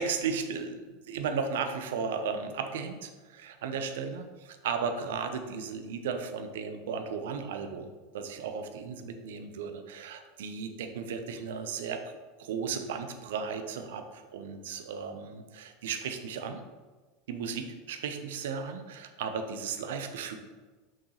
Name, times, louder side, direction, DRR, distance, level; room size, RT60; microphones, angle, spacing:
voice 1, 0.0-16.6 17.3-20.4, right 6 dB, 70° right, 7 dB, 0.7 m, -35 dB
6.5 x 6.0 x 3.0 m, 1.3 s
figure-of-eight pair, 80°, 0 cm